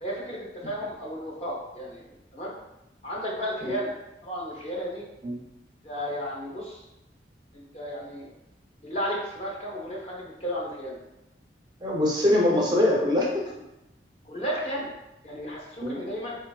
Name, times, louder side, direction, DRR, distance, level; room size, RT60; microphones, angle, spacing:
voice 1, 0.0-2.0 2.3-2.5 3.0-3.9 4.2-5.0 5.8-6.8 7.5-8.3 8.8-11.0 14.2-14.9 15.2-16.4, equal, 35° left, -4 dB, 0.6 m, -33 dB
voice 2, 11.8-13.5 15.8-16.0, left 1 dB, 25° right, -3 dB, 0.4 m, -23 dB
3.8 x 2.3 x 2.3 m, 0.91 s
head